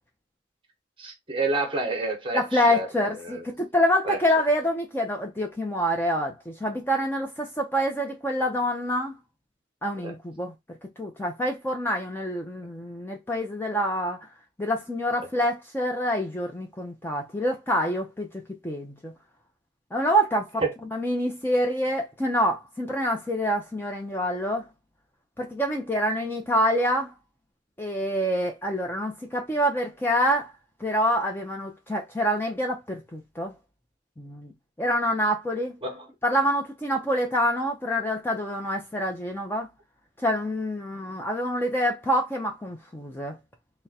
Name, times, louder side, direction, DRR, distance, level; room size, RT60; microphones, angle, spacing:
voice 1, 1.0-3.4 4.0-4.2 10.0-10.2 20.6-20.7 35.8-36.1, right 3 dB, 30° right, 1.1 m, -29 dB
voice 2, 2.3-9.1 9.8-10.5 11.0-14.2 14.6-19.1 19.9-20.6 20.9-24.6 25.4-27.1 27.8-30.5 30.8-33.5 34.2-34.5 34.8-35.8 36.2-39.7 40.2-43.4, equal, 10° left, 0.6 m, -26 dB
3.6 x 2.2 x 4.1 m
head